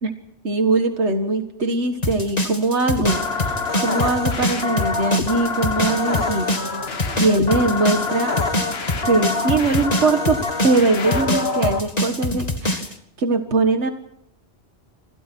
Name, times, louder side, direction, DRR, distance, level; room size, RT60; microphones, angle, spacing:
voice 1, 0.4-6.8 7.2-8.4 9.0-12.9 13.2-13.9, right 3 dB, 85° right, 6 dB, 2.0 m, -21 dB
sound 1, 2.0-12.9, left 1 dB, 35° left, 2.1 m, -24 dB
sound 2, 3.0-11.8, left 4 dB, 65° left, 1.8 m, -26 dB
28.0 x 26.0 x 4.6 m, 0.68 s
omnidirectional pair, 1.1 m